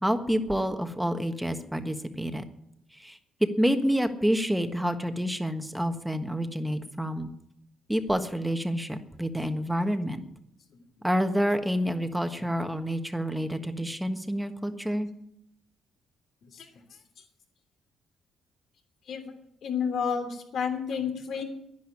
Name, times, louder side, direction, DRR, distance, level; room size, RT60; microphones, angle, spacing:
voice 1, 0.0-2.4 3.0-3.2 3.6-7.3 7.9-10.2 11.0-15.1, equal, 5° right, 7 dB, 1.4 m, -28 dB
voice 2, 19.6-21.4, left 6 dB, 65° left, 5 dB, 3.0 m, -30 dB
10.5 x 10.5 x 9.9 m, 0.79 s
cardioid pair, 90°, 0 cm